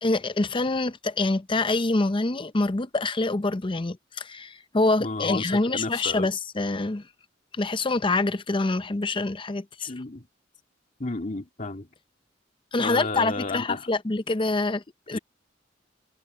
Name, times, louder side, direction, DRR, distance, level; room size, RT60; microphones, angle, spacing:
voice 1, 0.0-7.0 7.6-9.9 12.7-15.2, left 2 dB, 25° left, 0.7 m, -26 dB
voice 2, 5.0-6.3 9.8-10.2 11.0-11.9 12.8-13.8 15.1-15.2, left 3 dB, 45° left, 2.4 m, -32 dB
head